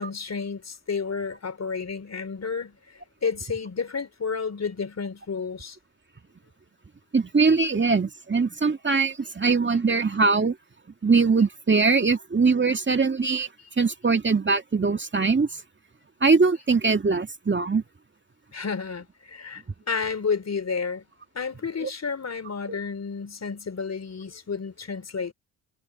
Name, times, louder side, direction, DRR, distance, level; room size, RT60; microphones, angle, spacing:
voice 1, 0.0-5.8 18.5-21.1 21.3-25.3, left 5 dB, 35° left, 3.8 m, -31 dB
voice 2, 7.1-10.6 11.0-13.5 13.8-15.6 16.2-17.8 21.8-21.9 22.7-22.8, right 4 dB, 25° right, 2.3 m, -22 dB
hypercardioid pair, 55°, 45 cm